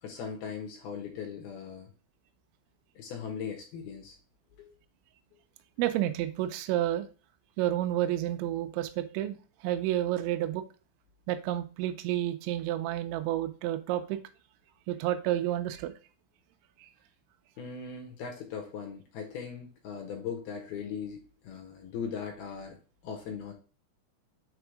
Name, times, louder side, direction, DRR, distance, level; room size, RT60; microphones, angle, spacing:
voice 1, 0.0-1.9 3.0-4.2 4.6-4.7 17.6-22.8 23.0-23.5, left 6 dB, 70° left, 2 dB, 2.6 m, -39 dB
voice 2, 5.8-7.1 7.6-9.4 9.6-10.6 11.3-14.2 14.9-15.9 16.8-16.9, right 13 dB, 85° right, 8 dB, 2.9 m, -30 dB
7.0 x 3.6 x 4.7 m, 0.35 s
omnidirectional pair, 5.5 m